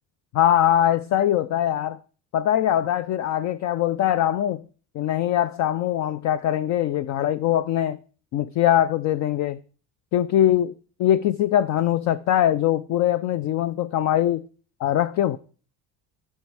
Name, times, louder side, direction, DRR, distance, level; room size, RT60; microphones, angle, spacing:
voice 1, 0.3-2.0 2.3-4.7 4.9-8.0 8.3-9.6 10.1-10.7 11.0-14.5 14.8-15.4, left 11 dB, 45° left, 0.4 m, -22 dB
11.0 x 4.4 x 4.7 m
cardioid pair, 130°, 41 cm